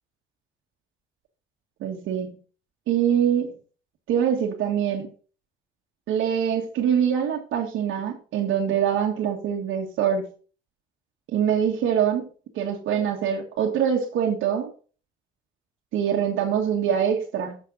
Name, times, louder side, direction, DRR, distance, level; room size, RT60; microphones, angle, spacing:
voice 1, 1.8-2.4 2.9-3.5 4.1-5.1 6.1-10.3 11.3-12.3 12.6-14.7 15.9-17.6, right 8 dB, 90° right, 1.8 m, -24 dB
10.0 x 6.5 x 4.0 m
cardioid pair, 90°, 20 cm